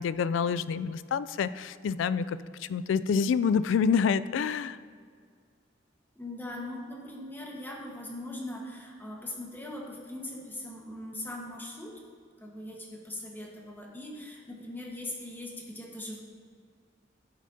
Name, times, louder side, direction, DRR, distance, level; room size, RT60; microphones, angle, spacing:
voice 1, 0.0-4.8, left 6 dB, 80° left, 16 dB, 0.3 m, -27 dB
voice 2, 6.1-12.0 12.4-16.2, left 1 dB, 10° left, -1 dB, 1.3 m, -40 dB
11.0 x 8.3 x 2.8 m, 2.1 s
head